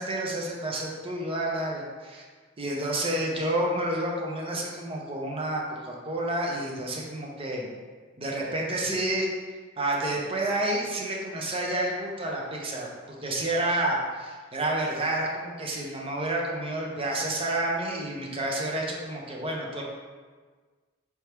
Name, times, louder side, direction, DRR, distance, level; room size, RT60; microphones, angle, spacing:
voice 1, 0.0-2.2 2.6-7.7 8.2-9.3 9.8-19.8, right 1 dB, 30° right, -1 dB, 0.6 m, -29 dB
4.6 x 2.9 x 3.3 m, 1.5 s
head